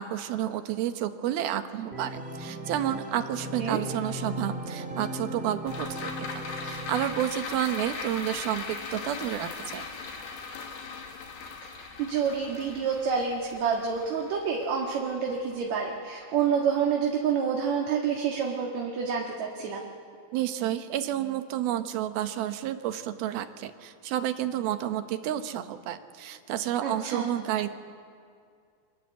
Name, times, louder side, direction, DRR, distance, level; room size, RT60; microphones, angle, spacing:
voice 1, 0.0-9.9 20.3-27.7, right 11 dB, 85° right, 9 dB, 3.0 m, -30 dB
Organ, 1.9-7.6, equal, 20° right, 1.7 m, -37 dB
sound 1, 5.7-16.2 16.5-16.6, left 4 dB, 85° left, 4.1 m, -39 dB
voice 2, 12.0-19.8 26.8-27.3, right 6 dB, 55° right, 0 dB, 2.8 m, -28 dB
29.5 x 24.5 x 8.1 m, 2.3 s
omnidirectional pair, 4.2 m